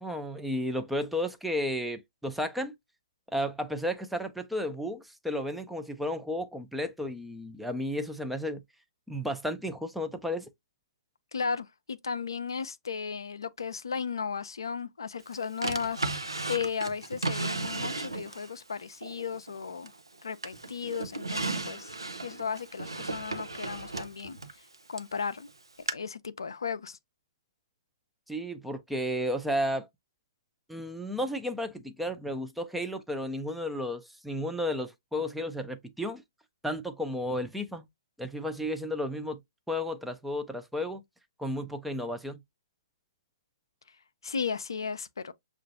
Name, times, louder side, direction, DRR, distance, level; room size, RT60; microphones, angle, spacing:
voice 1, 0.0-2.7 3.3-8.6 9.1-10.5 28.3-29.9 30.7-36.2 36.6-37.9 38.2-39.4 39.7-41.0 41.4-42.4, equal, ahead, 0.5 m, -33 dB
voice 2, 11.3-19.9 20.2-21.9 22.2-24.4 24.9-25.5 25.9-27.0 44.2-45.3, left 6 dB, 75° left, 0.4 m, -35 dB
Drawer open or close, 15.6-18.5 19.0-20.1 20.4-25.1 25.9-26.0, right 3 dB, 90° right, 0.7 m, -35 dB
6.5 x 2.4 x 2.5 m
figure-of-eight pair, 125°, 2 cm